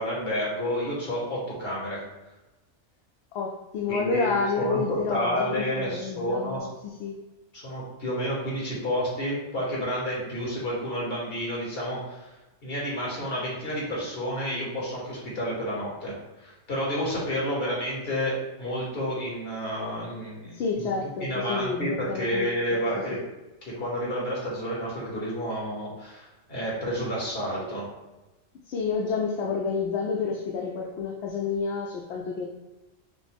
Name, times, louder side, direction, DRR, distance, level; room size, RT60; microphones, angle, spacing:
voice 1, 0.0-2.0 3.9-6.7 7.5-12.3 12.6-20.9 21.2-23.2 23.6-27.9, equal, 50° left, -5 dB, 1.7 m, -30 dB
voice 2, 3.3-6.7 7.0-7.1 20.5-22.8 23.1-23.2 28.7-32.5, left 5 dB, 65° left, 0 dB, 0.8 m, -29 dB
6.1 x 2.0 x 3.4 m, 1.1 s
omnidirectional pair, 1.3 m